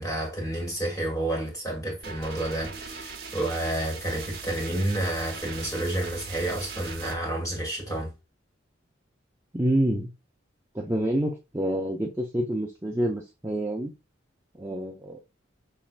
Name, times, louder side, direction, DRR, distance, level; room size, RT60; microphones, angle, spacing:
voice 1, 0.0-8.1, right 1 dB, 15° left, 1.8 m, -30 dB
sound 1, 2.0-7.2, right 5 dB, 55° right, 0.9 m, -40 dB
voice 2, 9.5-10.1 10.7-13.9 14.6-15.2, right 1 dB, 15° right, 0.5 m, -27 dB
5.7 x 3.1 x 2.4 m
head